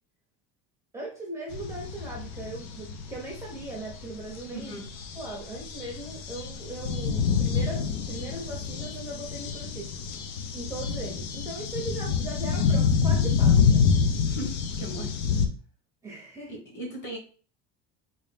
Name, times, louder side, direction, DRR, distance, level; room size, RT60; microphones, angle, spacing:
voice 1, 0.9-4.7 5.2-9.9 10.5-13.9 16.0-16.5, right 2 dB, 10° right, -2 dB, 0.6 m, -39 dB
sound 1, 1.5-15.5, left 6 dB, 70° left, 0.7 m, -27 dB
voice 2, 4.5-4.8 14.3-15.1 16.5-17.2, right 1 dB, 35° left, 0 dB, 1.4 m, -37 dB
3.9 x 2.5 x 3.4 m, 0.41 s
cardioid pair, 165°, 31 cm